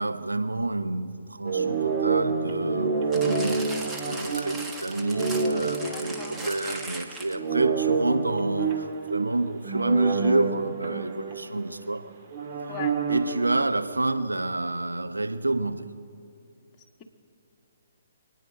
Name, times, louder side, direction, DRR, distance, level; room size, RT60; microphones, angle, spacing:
voice 1, 0.0-12.1 13.1-15.9, right 2 dB, 85° right, 9 dB, 0.9 m, -28 dB
sound 1, 1.4-6.9 7.3-11.9 12.3-13.5, right 5 dB, 35° right, 1.8 m, -28 dB
sound 2, 3.1-7.6 8.3-8.4, right 2 dB, 10° right, 1.3 m, -38 dB
voice 2, 5.9-6.3 12.7-13.0, left 8 dB, 25° left, 2 dB, 1.5 m, -38 dB
26.0 x 9.8 x 5.1 m, 2.6 s
figure-of-eight pair, 130°, 0 cm